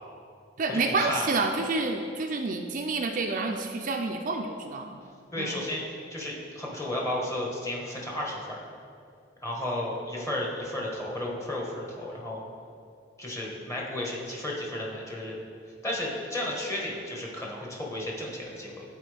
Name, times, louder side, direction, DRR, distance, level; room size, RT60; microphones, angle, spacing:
voice 1, 0.6-5.0 5.4-5.6, right 3 dB, 45° right, 3 dB, 0.4 m, -29 dB
voice 2, 5.3-8.6 9.4-12.4 13.2-15.4 15.8-18.8, left 1 dB, 15° left, -3 dB, 1.4 m, -33 dB
12.0 x 4.5 x 3.4 m, 2.3 s
head